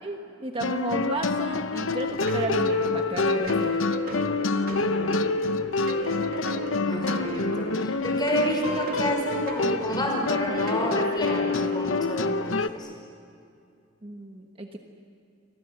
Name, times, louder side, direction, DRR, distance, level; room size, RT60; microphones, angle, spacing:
voice 1, 0.0-3.9 8.4-8.7 14.0-14.8, right 1 dB, 25° right, 3 dB, 1.3 m, -33 dB
sound 1, 0.6-12.7, left 3 dB, 70° left, 0.9 m, -27 dB
sound 2, 2.3-11.9, right 3 dB, 45° right, 2.5 m, -37 dB
voice 2, 4.6-5.3 6.8-12.9, equal, 20° left, 1 dB, 5.6 m, -30 dB
29.0 x 24.5 x 7.9 m, 2.4 s
head